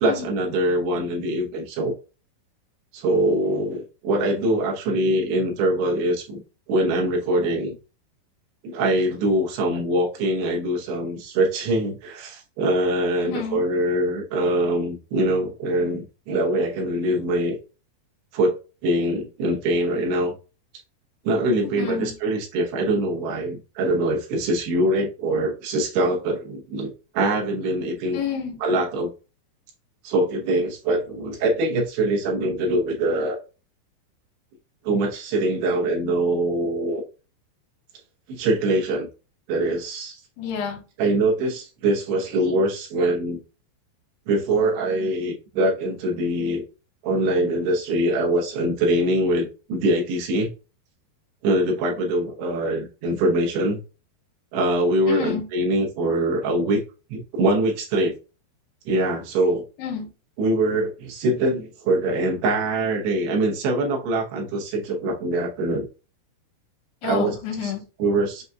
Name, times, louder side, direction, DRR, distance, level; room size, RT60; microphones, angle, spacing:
voice 1, 0.0-1.9 2.9-6.4 6.7-7.8 8.6-17.6 18.3-18.5 18.8-20.3 21.2-28.2 28.6-29.1 30.0-33.4 34.8-37.0 38.3-39.1 39.5-40.2 41.0-43.4 44.3-46.6 47.0-50.5 51.4-53.8 54.5-56.8 57.1-58.1 58.9-59.6 60.4-65.9 67.0-67.3 68.0-68.4, right 1 dB, 85° right, 3.2 m, -23 dB
voice 2, 13.2-13.6 21.6-22.1 28.1-28.6 40.4-40.8 55.1-55.5 59.8-60.1 67.0-67.8, left 7 dB, 80° left, 2.8 m, -29 dB
7.0 x 2.7 x 2.3 m
omnidirectional pair, 4.6 m